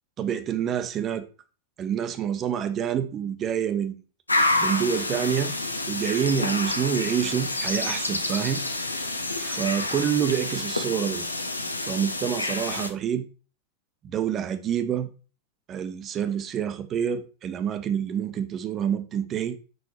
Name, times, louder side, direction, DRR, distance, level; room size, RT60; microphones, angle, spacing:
voice 1, 0.2-1.2 1.8-4.0 4.6-5.5 5.9-8.6 9.4-11.3 11.8-13.3 14.0-15.1 15.7-19.6, right 8 dB, 30° right, 0.8 m, -27 dB
sound 1, 4.3-12.9, left 2 dB, 80° left, 0.8 m, -28 dB
5.6 x 5.4 x 4.3 m
figure-of-eight pair, 90°, 0 cm